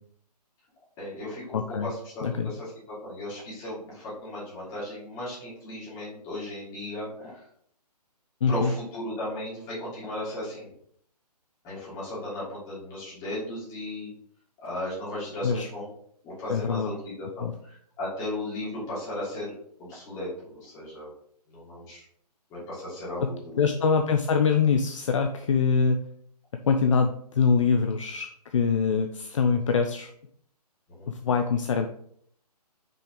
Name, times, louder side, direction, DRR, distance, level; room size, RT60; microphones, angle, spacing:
voice 1, 1.0-7.4 8.5-10.7 11.6-14.1 14.6-15.9 16.2-19.5 19.8-21.1 21.5-22.0 22.5-23.7 31.0-31.1, left 1 dB, 15° left, -8 dB, 2.9 m, -36 dB
voice 2, 1.5-1.9 2.2-2.5 8.4-8.7 15.4-15.7 16.5-16.9 17.4-17.5 23.2-23.3 23.6-26.0 26.7-30.1 31.1-31.9, left 5 dB, 50° left, 6 dB, 0.5 m, -24 dB
5.8 x 5.1 x 3.8 m, 0.66 s
hypercardioid pair, 155°, 21 cm